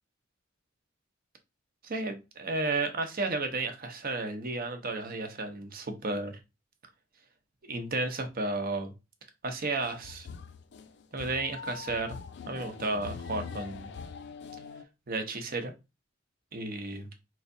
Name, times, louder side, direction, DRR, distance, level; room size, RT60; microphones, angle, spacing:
voice 1, 1.8-6.3 7.7-8.9 9.4-10.3 11.1-12.2 12.5-13.9 15.1-15.7 16.5-17.1, right 3 dB, 50° right, 6 dB, 0.8 m, -33 dB
sound 1, 9.8-14.8, left 6 dB, 60° left, 0.4 m, -43 dB
4.5 x 3.1 x 2.6 m, 0.26 s
head